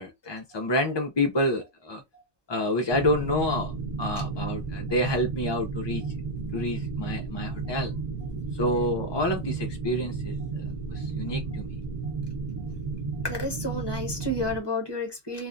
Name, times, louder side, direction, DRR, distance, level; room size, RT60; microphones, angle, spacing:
voice 1, 0.0-2.0 2.5-3.7 4.0-6.0 6.5-7.9 8.6-10.4 10.9-11.7, left 1 dB, 45° left, 0.3 m, -28 dB
sound 1, 2.9-14.6, right 4 dB, 35° right, 0.7 m, -33 dB
voice 2, 13.2-15.5, left 1 dB, 25° left, 0.9 m, -31 dB
2.5 x 2.2 x 3.7 m
omnidirectional pair, 1.2 m